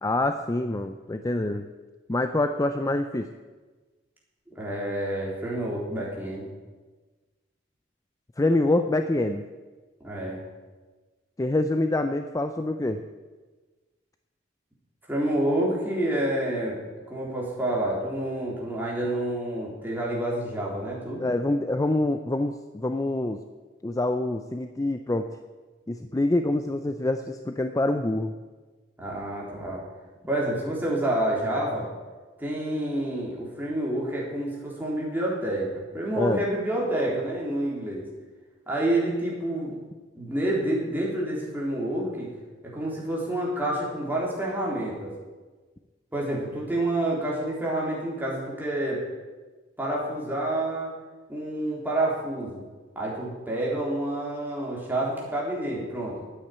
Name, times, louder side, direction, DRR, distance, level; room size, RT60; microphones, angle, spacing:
voice 1, 0.0-1.6 2.1-3.3 8.4-9.4 11.4-13.0 21.2-23.4 23.8-25.3 25.9-28.3 36.2-36.4, left 2 dB, 20° left, 7 dB, 0.5 m, -26 dB
voice 2, 4.5-6.5 10.0-10.4 15.1-16.8 17.1-21.2 29.0-29.8 30.3-31.9 32.4-38.1 38.7-39.7 40.1-42.3 42.6-45.1 46.1-49.0 49.8-50.9 51.3-52.6 53.0-56.1, right 1 dB, 10° right, -5 dB, 3.7 m, -28 dB
10.0 x 8.7 x 9.3 m, 1.3 s
head